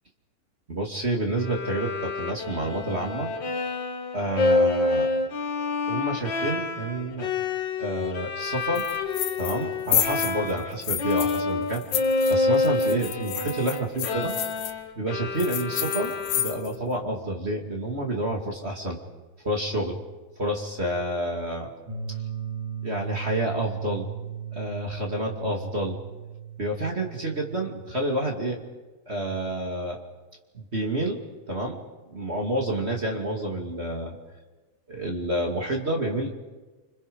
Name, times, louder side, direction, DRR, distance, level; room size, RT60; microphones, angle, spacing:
voice 1, 0.7-3.3 4.1-5.1 5.9-7.3 7.8-8.9 9.4-11.8 12.3-14.3 15.0-19.0 19.4-20.0 20.4-21.7 22.8-24.1 24.5-26.0 26.6-28.6 29.1-30.0 30.5-31.2 31.5-31.8 32.1-34.1 34.9-36.3, right 1 dB, 20° right, 1 dB, 2.3 m, -29 dB
Bowed string instrument, 1.4-10.7 11.0-16.8, left 3 dB, 45° left, 1.7 m, -28 dB
sound 1, 8.8-9.6 9.9-11.4 11.7-14.7 15.4-16.8, left 11 dB, 75° left, 2.6 m, -30 dB
sound 2, 21.9-28.5, right 8 dB, 50° right, 3.9 m, -37 dB
30.0 x 26.0 x 5.4 m, 1.2 s
omnidirectional pair, 3.6 m